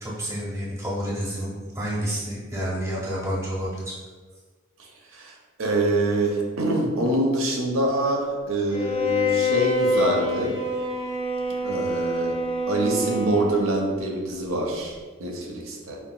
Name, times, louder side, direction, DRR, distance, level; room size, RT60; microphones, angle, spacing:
voice 1, 0.0-3.9, equal, 15° right, -5 dB, 0.7 m, -29 dB
voice 2, 4.8-10.6 11.6-12.3 12.7-16.0, right 1 dB, 85° right, 0 dB, 0.6 m, -25 dB
Bowed string instrument, 8.7-13.8, left 2 dB, 30° left, 0.4 m, -26 dB
3.7 x 2.3 x 2.3 m, 1.4 s
head